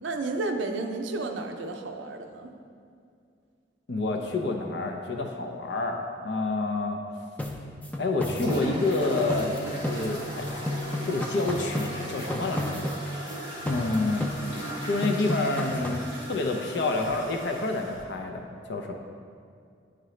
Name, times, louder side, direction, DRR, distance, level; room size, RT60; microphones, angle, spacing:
voice 1, 0.0-2.5, right 3 dB, 90° right, 4 dB, 0.5 m, -32 dB
voice 2, 3.9-7.0 8.0-10.7 11.0-12.9 13.6-14.3 14.9-18.9, left 2 dB, 70° left, 3 dB, 0.5 m, -28 dB
sound 1, 7.4-10.4 10.7-13.4 13.7-14.7 15.0-16.1, left 1 dB, 10° left, 0.3 m, -33 dB
sound 2, 8.4-18.0, right 1 dB, 85° left, 1.5 m, -38 dB
9.7 x 3.8 x 3.2 m, 2.3 s
head